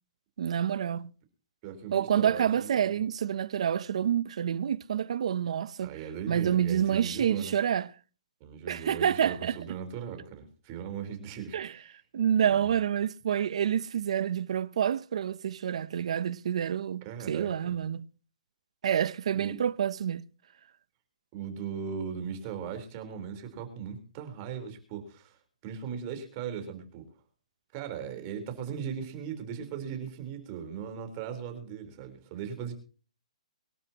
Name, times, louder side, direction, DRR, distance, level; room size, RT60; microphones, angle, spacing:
voice 1, 0.4-1.1 1.9-5.9 6.3-7.9 8.7-9.6 11.5-11.7 12.1-18.1 18.8-20.3, right 9 dB, 55° right, 0.8 m, -28 dB
voice 2, 1.6-3.1 5.8-7.6 8.4-12.0 12.4-12.7 17.0-17.7 19.3-19.6 21.3-27.1 27.7-32.7, right 7 dB, 25° right, 4.1 m, -38 dB
23.5 x 12.5 x 3.0 m
hypercardioid pair, 165°, 4 cm